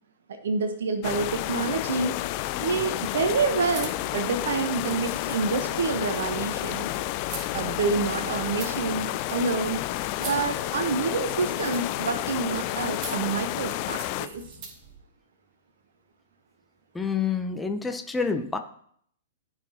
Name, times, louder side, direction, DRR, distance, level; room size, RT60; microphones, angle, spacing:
voice 1, 0.3-2.2 2.6-6.9 7.5-9.8 10.2-14.5, right 4 dB, 70° right, 7 dB, 0.9 m, -28 dB
sound 1, 1.0-14.3, left 15 dB, 45° left, 0.4 m, -30 dB
sound 2, 3.3-14.9, right 4 dB, 40° right, 2.2 m, -45 dB
voice 2, 16.9-18.6, left 5 dB, 10° left, 6 dB, 0.8 m, -28 dB
14.5 x 4.9 x 2.8 m, 0.65 s
figure-of-eight pair, 110°, 0 cm